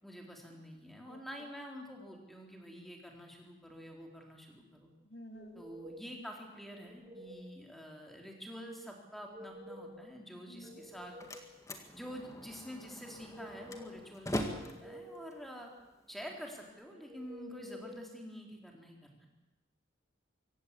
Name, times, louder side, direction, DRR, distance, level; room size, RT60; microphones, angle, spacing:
voice 1, 0.0-4.9 5.5-11.1 11.9-15.7 16.1-19.3, equal, ahead, 1 dB, 3.8 m, -48 dB
voice 2, 5.0-5.6 10.5-10.8 17.7-17.9, equal, 65° left, 6 dB, 2.0 m, -51 dB
sound 1, 5.3-6.2 6.7-7.5 9.1-10.1 10.5-11.6 13.0-14.0 14.5-15.5 17.1-18.1, equal, 30° right, 2.3 m, -51 dB
Slam, 10.7-16.7, left 1 dB, 15° left, 1.9 m, -43 dB
24.0 x 17.0 x 8.4 m, 1.0 s
head